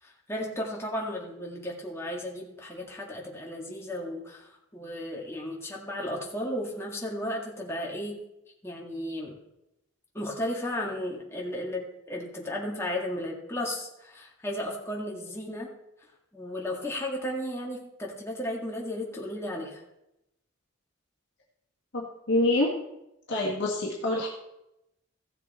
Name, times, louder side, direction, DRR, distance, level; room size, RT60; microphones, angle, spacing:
voice 1, 0.0-8.2 8.6-9.4 10.1-15.7 16.3-19.8, left 1 dB, 10° left, -2 dB, 2.0 m, -34 dB
voice 2, 21.9-22.7 23.3-24.3, left 2 dB, 55° left, -3 dB, 1.7 m, -26 dB
15.5 x 6.9 x 4.3 m, 0.88 s
head